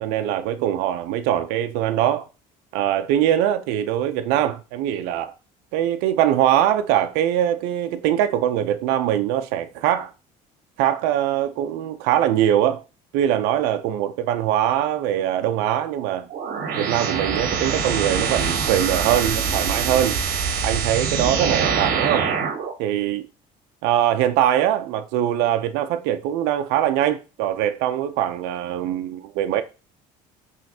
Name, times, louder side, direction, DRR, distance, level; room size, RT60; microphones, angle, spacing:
voice 1, 0.0-2.3 2.7-5.3 5.7-10.1 10.8-12.8 13.1-16.3 16.7-20.2 20.6-22.3 22.8-23.2 23.8-29.6, right 11 dB, 85° right, 0.5 m, -22 dB
sound 1, 16.3-22.7, right 6 dB, 65° right, 1.1 m, -24 dB
5.6 x 3.1 x 2.7 m
cardioid pair, 105°, 16 cm